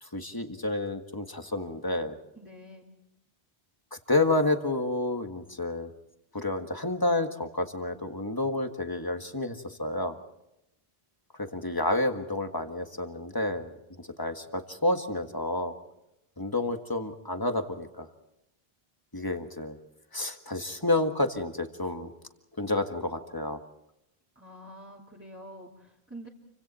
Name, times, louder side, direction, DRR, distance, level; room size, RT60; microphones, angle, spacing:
voice 1, 0.0-2.2 4.1-5.9 6.3-10.2 11.4-13.7 14.0-15.7 16.4-18.1 19.1-19.8 20.1-22.1 22.6-23.6, left 2 dB, 20° left, 6 dB, 1.7 m, -29 dB
voice 2, 2.4-2.9 24.4-26.3, right 1 dB, 10° right, -5 dB, 2.7 m, -47 dB
29.0 x 25.0 x 4.4 m, 0.86 s
omnidirectional pair, 1.0 m